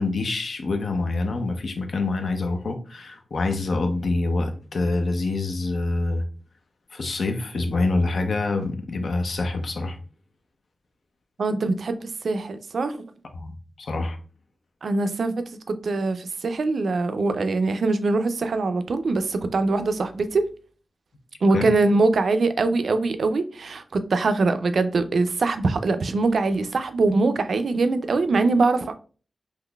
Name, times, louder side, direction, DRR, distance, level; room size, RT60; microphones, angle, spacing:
voice 1, 0.0-6.2 6.9-10.0 13.3-14.2 21.5-21.7, left 3 dB, 65° left, 0.5 m, -26 dB
voice 2, 11.4-13.0 14.8-20.4 21.4-28.9, right 3 dB, 70° right, 0.3 m, -23 dB
3.7 x 2.9 x 2.2 m
wide cardioid pair, 130°, 0 cm